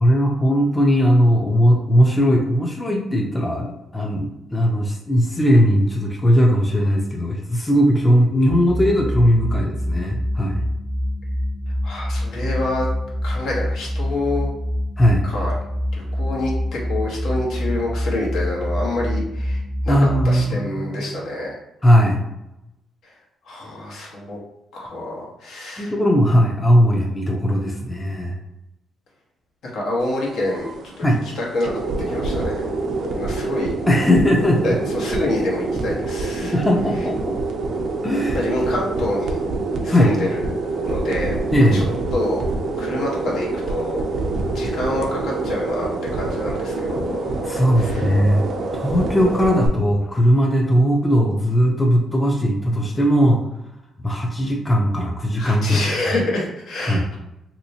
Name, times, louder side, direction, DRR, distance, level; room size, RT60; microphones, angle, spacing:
voice 1, 0.0-10.7 15.0-15.3 19.9-21.1 21.8-22.2 25.8-28.4 31.0-31.2 33.9-34.8 36.4-37.4 38.0-38.4 39.9-40.1 41.5-41.9 47.4-48.5 48.7-53.5 54.0-55.8 56.8-57.0, equal, 15° left, 0 dB, 0.6 m, -18 dB
sound 1, 8.5-20.3, equal, 90° left, 0.8 m, -25 dB
voice 2, 11.8-12.9 13.2-14.5 15.2-15.5 15.9-21.6 23.4-24.4 24.7-25.9 29.7-30.7 31.0-31.1 31.3-31.8 32.1-32.6 33.1-33.7 34.6-36.5 38.3-39.4 39.8-41.8 42.1-42.4 42.8-44.0 44.5-47.2 47.8-48.1 55.3-57.2, left 1 dB, 75° left, -3 dB, 1.2 m, -27 dB
sound 2, 30.0-49.7, right 3 dB, 60° right, 0.5 m, -26 dB
3.2 x 2.9 x 2.8 m, 0.88 s
cardioid pair, 90°, 0 cm